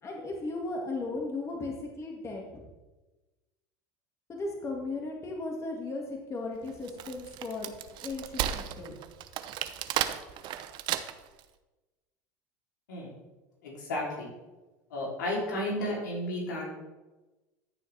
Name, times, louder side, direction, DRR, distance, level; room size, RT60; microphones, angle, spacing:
voice 1, 0.0-2.6 4.3-7.7 8.0-9.0, left 2 dB, 30° left, 0 dB, 2.0 m, -36 dB
Wood, 6.7-11.4, right 11 dB, 55° right, 0.7 m, -34 dB
voice 2, 13.6-14.3 14.9-16.7, left 1 dB, 85° left, -3 dB, 3.2 m, -33 dB
14.0 x 6.6 x 3.4 m, 1.1 s
hypercardioid pair, 90°, 10 cm